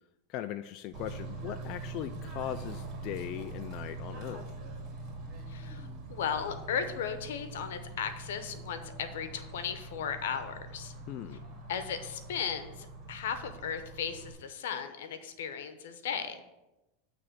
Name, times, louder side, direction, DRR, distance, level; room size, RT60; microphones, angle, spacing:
voice 1, 0.3-4.5 11.1-11.4, left 12 dB, 50° left, 9 dB, 0.3 m, -39 dB
Bird / Train, 0.9-14.3, right 2 dB, 40° right, 2.2 m, -43 dB
voice 2, 5.5-10.9 11.7-16.6, left 7 dB, 80° left, 9 dB, 0.9 m, -36 dB
8.9 x 3.3 x 6.7 m, 1.0 s
supercardioid pair, 125°, 0 cm